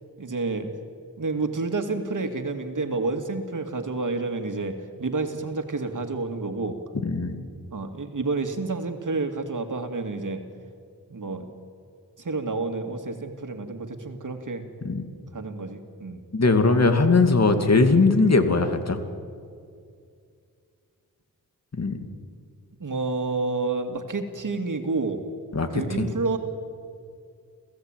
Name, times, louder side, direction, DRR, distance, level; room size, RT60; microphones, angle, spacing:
voice 1, 0.2-0.7 1.2-6.8 7.7-10.4 11.1-11.5 12.2-14.6 15.3-16.2 22.8-25.2 25.7-26.4, right 3 dB, 60° right, 6 dB, 2.3 m, -29 dB
voice 2, 7.0-7.4 14.8-15.0 16.3-19.0 21.7-22.0 25.5-26.1, left 3 dB, 45° left, 7 dB, 2.5 m, -20 dB
27.5 x 16.0 x 9.1 m, 2.3 s
cardioid pair, 60°, 36 cm